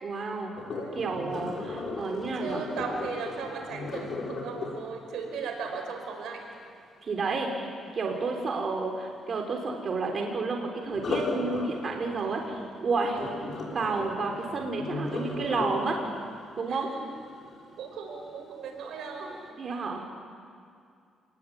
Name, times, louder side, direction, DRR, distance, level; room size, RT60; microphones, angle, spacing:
voice 1, 0.0-0.5 0.9-2.6 7.0-13.2 13.7-16.0 16.6-16.9 19.6-20.0, right 3 dB, 45° right, 2 dB, 3.8 m, -30 dB
Sink (filling or washing), 0.5-6.5 10.9-17.9 18.4-18.8 19.2-19.3, left 3 dB, 55° left, 6.0 m, -37 dB
voice 2, 0.6-1.0 2.4-6.4 8.3-8.4 13.1-13.4 16.7-16.9 17.8-19.4, right 5 dB, 80° right, 3 dB, 5.3 m, -37 dB
28.0 x 20.5 x 9.4 m, 2.3 s
cardioid pair, 90°, 0 cm